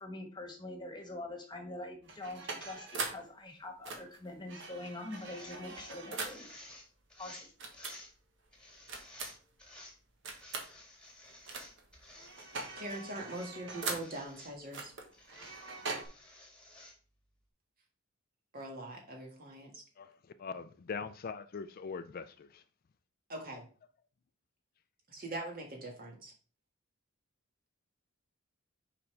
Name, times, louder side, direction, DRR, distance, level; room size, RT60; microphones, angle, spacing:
voice 1, 0.0-6.5 7.2-8.0, left 2 dB, 20° left, 1.3 m, -44 dB
sound 1, 2.0-3.3 3.8-6.5 7.6-8.0 8.9-9.5 10.2-10.7 11.5-11.8 12.1-14.2 14.7-16.1, right 3 dB, 60° right, 1.3 m, -41 dB
sound 2, 5.1-8.1 8.5-9.9 10.3-13.5 13.8-14.5 15.1-17.0, left 1 dB, 5° left, 1.7 m, -54 dB
voice 2, 12.7-14.9 18.5-19.8 23.3-23.6 25.1-26.3, right 1 dB, 45° right, 1.7 m, -42 dB
voice 3, 20.0-22.6, left 5 dB, 45° left, 0.4 m, -42 dB
6.9 x 5.1 x 3.3 m
head